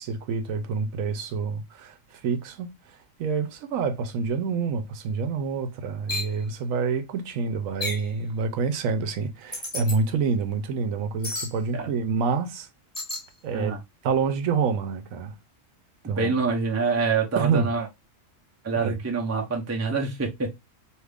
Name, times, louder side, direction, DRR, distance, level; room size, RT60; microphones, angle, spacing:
voice 1, 0.0-12.7 13.4-13.7 14.0-15.3 16.1-16.4 17.4-17.7 18.8-19.0, right 5 dB, 80° right, 1.0 m, -27 dB
sound 1, 6.1-6.3 7.8-8.1 9.5-10.0 11.2-11.5 12.9-13.3, left 2 dB, 20° left, 0.6 m, -31 dB
voice 2, 16.0-17.9 18.6-20.5, right 4 dB, 20° right, 0.4 m, -26 dB
2.8 x 2.4 x 3.3 m
omnidirectional pair, 1.4 m